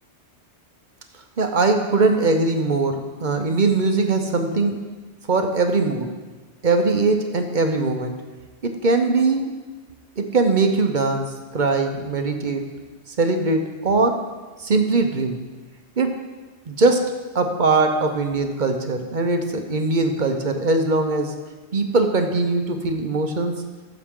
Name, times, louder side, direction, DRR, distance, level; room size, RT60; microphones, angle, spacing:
voice 1, 1.4-4.8 5.3-6.1 6.6-8.2 8.6-9.5 10.2-12.7 13.2-14.3 14.6-15.4 16.0-16.2 16.7-21.4 21.7-23.6, right 3 dB, 45° right, 5 dB, 0.9 m, -21 dB
14.5 x 6.9 x 3.7 m, 1.3 s
omnidirectional pair, 1.2 m